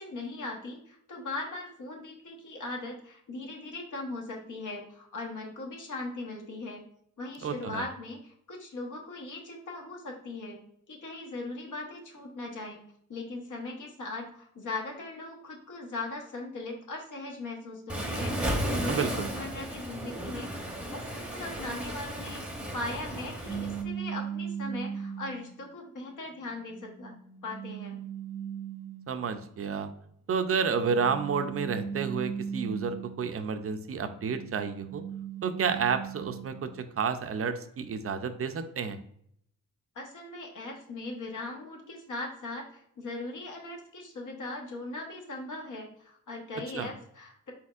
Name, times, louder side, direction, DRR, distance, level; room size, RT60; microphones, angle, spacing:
voice 1, 0.0-6.8 7.2-10.6 10.9-12.8 13.1-18.4 18.8-20.5 20.9-22.4 22.7-27.1 27.4-28.0 39.9-47.5, left 2 dB, 70° left, 1 dB, 1.1 m, -39 dB
voice 2, 7.4-7.8 18.9-19.3 29.1-29.9 30.3-35.0 35.4-39.0 46.7-46.9, right 6 dB, 45° right, 9 dB, 0.5 m, -30 dB
Waves surf, 17.9-23.8, right 1 dB, 5° right, 0.8 m, -34 dB
sound 1, 23.4-25.6 26.3-29.4 30.5-33.5 33.9-36.9, right 7 dB, 45° left, 1.4 m, -38 dB
4.3 x 4.3 x 2.4 m, 0.69 s
wide cardioid pair, 130°, 32 cm